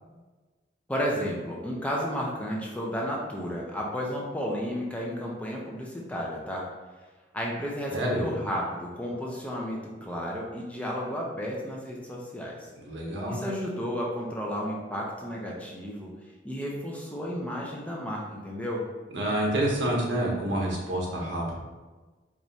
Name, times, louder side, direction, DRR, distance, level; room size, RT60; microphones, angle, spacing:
voice 1, 0.9-6.7 7.3-12.7 13.3-16.1 16.4-18.8, equal, 5° left, -3 dB, 0.5 m, -32 dB
voice 2, 7.9-8.2 12.8-13.4 19.1-21.5, right 1 dB, 90° right, -3 dB, 1.1 m, -28 dB
4.7 x 3.0 x 2.7 m, 1.3 s
head